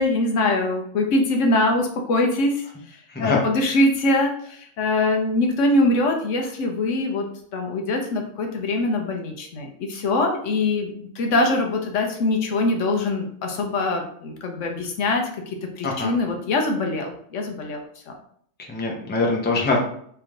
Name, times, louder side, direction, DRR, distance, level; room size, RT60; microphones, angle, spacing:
voice 1, 0.0-2.6 3.2-7.3 7.5-17.8 18.1-18.2, left 2 dB, 70° left, 3 dB, 1.0 m, -23 dB
voice 2, 3.1-3.4 15.8-16.1 18.7-19.8, left 3 dB, 10° left, -2 dB, 0.6 m, -23 dB
3.3 x 3.0 x 3.7 m, 0.63 s
omnidirectional pair, 1.4 m